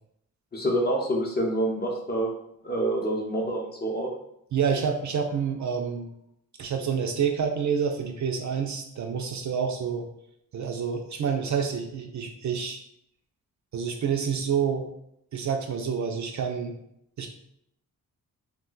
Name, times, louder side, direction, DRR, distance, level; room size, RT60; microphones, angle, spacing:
voice 1, 0.5-2.3 2.6-4.1, right 1 dB, 25° left, -1 dB, 0.7 m, -27 dB
voice 2, 4.5-6.1 6.6-10.1 10.5-12.8 13.7-14.9 15.3-16.8 17.2-17.3, right 6 dB, 50° right, 4 dB, 0.4 m, -28 dB
2.4 x 2.2 x 3.8 m, 0.75 s
cardioid pair, 90°, 37 cm